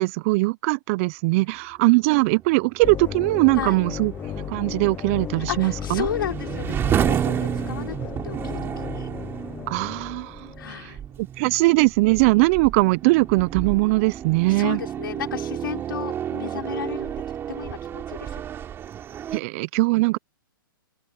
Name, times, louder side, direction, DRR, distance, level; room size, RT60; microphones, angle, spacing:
voice 1, 0.0-6.1 9.7-10.5 11.2-14.8 19.3-20.2, right 24 dB, 35° right, 0.6 m, -21 dB
sound 1, 2.4-19.4, right 10 dB, 20° right, 3.6 m, -31 dB
sound 2, 2.8-10.9, left 9 dB, 15° left, 0.9 m, -35 dB
voice 2, 5.4-9.1 10.6-11.0 14.5-17.2 17.5-18.4, left 9 dB, 70° left, 5.3 m, -33 dB
open air
hypercardioid pair, 140°, 12 cm